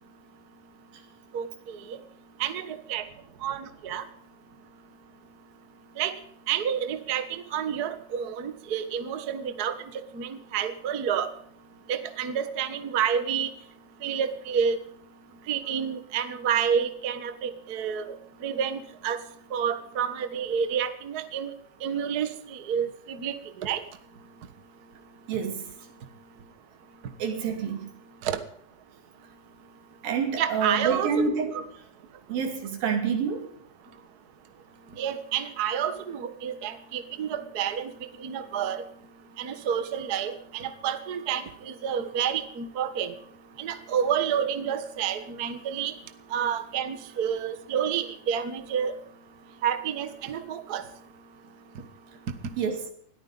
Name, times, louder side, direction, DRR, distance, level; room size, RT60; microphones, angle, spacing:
voice 1, 1.3-1.8 2.4-3.0 3.4-4.0 6.0-6.1 6.5-9.7 10.1-11.3 11.9-13.5 14.0-14.8 15.5-18.2 18.4-19.2 19.5-21.5 21.8-23.8 28.2-28.4 30.4-31.6 35.0-37.9 38.2-38.8 39.4-43.1 43.6-45.9 46.3-48.9 49.6-50.8, right 8 dB, 60° right, 1.0 m, -29 dB
voice 2, 25.3-25.7 27.2-27.9 30.0-31.6 32.3-33.5 52.6-52.9, right 6 dB, 90° right, 4.3 m, -28 dB
20.5 x 14.0 x 4.0 m
omnidirectional pair, 4.0 m